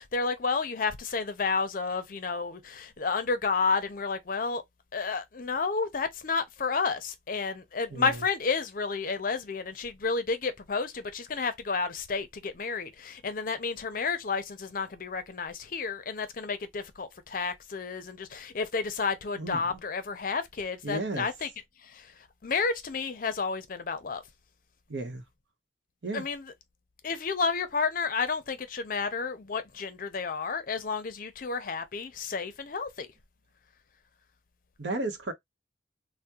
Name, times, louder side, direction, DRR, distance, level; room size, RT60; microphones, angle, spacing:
voice 1, 0.0-4.6 4.9-21.5 21.8-22.1 22.4-24.2 26.1-26.5 27.0-33.1, left 4 dB, 50° left, 0.5 m, -31 dB
voice 2, 7.9-8.2 19.3-19.7 20.8-21.3 24.9-25.2 26.0-26.2 34.8-35.3, right 2 dB, 80° right, 0.8 m, -33 dB
3.4 x 2.1 x 2.8 m
head